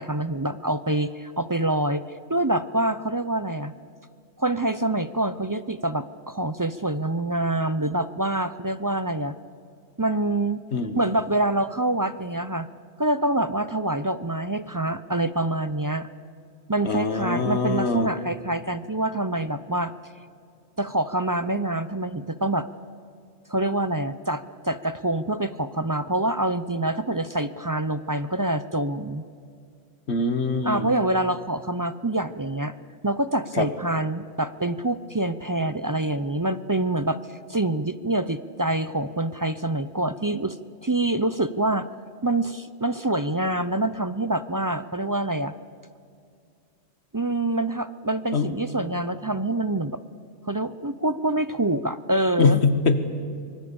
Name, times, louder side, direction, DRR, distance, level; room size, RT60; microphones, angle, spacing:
voice 1, 0.0-2.0 2.3-3.7 4.4-9.3 10.0-10.6 10.9-12.7 13.0-16.1 16.7-19.9 20.8-22.7 23.5-29.2 30.6-32.7 33.0-37.2 37.5-40.6 40.8-41.9 42.2-45.5 47.1-50.0 50.5-52.6, right 1 dB, 25° right, 13 dB, 0.4 m, -26 dB
voice 2, 16.8-18.1 30.1-30.9 33.6-33.7 48.3-48.5 52.4-53.0, left 4 dB, 60° left, 10 dB, 1.8 m, -23 dB
25.0 x 23.0 x 7.1 m, 2.4 s
omnidirectional pair, 1.3 m